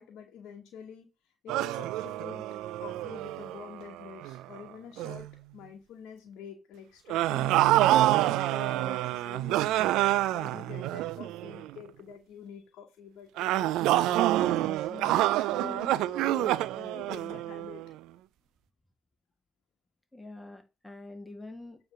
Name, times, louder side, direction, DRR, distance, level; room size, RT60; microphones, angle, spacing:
voice 1, 0.0-2.4 2.8-5.3 5.5-7.6 8.0-9.8 10.3-17.8, left 7 dB, 75° left, 2 dB, 1.2 m, -47 dB
sound 1, 1.5-4.6 5.0-5.3 7.1-11.7 13.4-17.9, right 15 dB, 80° right, 0.3 m, -27 dB
voice 2, 7.3-7.6 15.6-15.9 20.1-21.8, left 2 dB, 10° left, 5 dB, 1.9 m, -44 dB
8.8 x 3.2 x 5.6 m, 0.28 s
hypercardioid pair, 55°, 0 cm